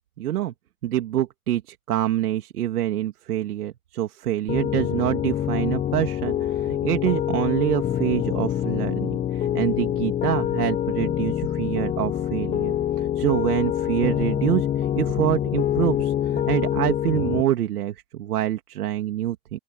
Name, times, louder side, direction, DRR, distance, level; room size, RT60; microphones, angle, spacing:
voice 1, 0.2-0.5 0.8-19.6, right 12 dB, 85° right, 2.4 m, -26 dB
Piano, 4.5-17.4, left 10 dB, 20° left, 0.4 m, -25 dB
open air
hypercardioid pair, 95°, 45 cm